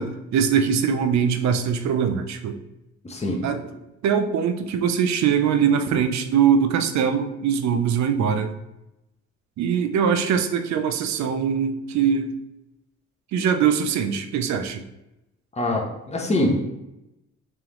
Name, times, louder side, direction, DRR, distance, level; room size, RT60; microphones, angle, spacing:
voice 1, 0.0-2.6 3.4-3.6 4.0-8.5 9.6-12.4 13.3-14.8, right 7 dB, 65° right, 8 dB, 0.5 m, -22 dB
voice 2, 3.0-3.4 15.6-16.7, left 1 dB, 20° left, 0 dB, 0.9 m, -24 dB
3.5 x 3.4 x 3.0 m, 0.91 s
cardioid pair, 90°, 30 cm